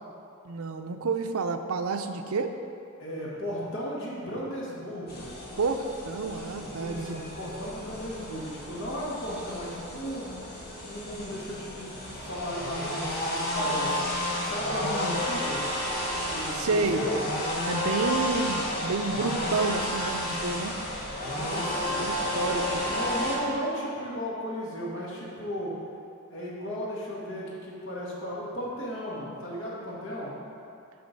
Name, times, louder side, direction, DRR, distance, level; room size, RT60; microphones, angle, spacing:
voice 1, 0.4-2.5 5.6-7.3 16.5-17.1 17.6-20.7 21.9-22.8, right 4 dB, 90° right, 7 dB, 0.5 m, -30 dB
voice 2, 3.0-5.3 6.7-10.3 10.9-14.0 14.4-15.6 16.3-17.2 21.3-22.0 22.4-25.8 26.3-30.3, equal, 65° left, -5 dB, 2.0 m, -35 dB
sound 1, 5.1-23.4, left 1 dB, 50° left, 1.7 m, -32 dB
6.9 x 6.3 x 5.3 m, 2.6 s
head